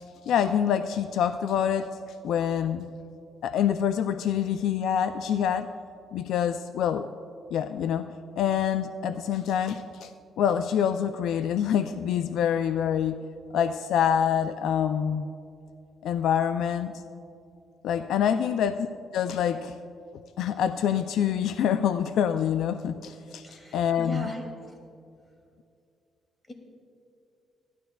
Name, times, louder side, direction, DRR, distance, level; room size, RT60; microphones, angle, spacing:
voice 1, 0.3-1.9 2.2-2.9 3.4-5.7 6.1-7.1 7.5-10.1 10.4-13.2 13.5-15.3 16.0-16.9 17.8-18.9 19.1-19.7 20.4-23.4 23.7-24.3, left 9 dB, 80° left, 10 dB, 0.3 m, -26 dB
voice 2, 23.4-24.4 26.5-26.6, left 1 dB, 25° left, 1 dB, 2.4 m, -39 dB
17.5 x 11.5 x 2.3 m, 2.5 s
cardioid pair, 90°, 0 cm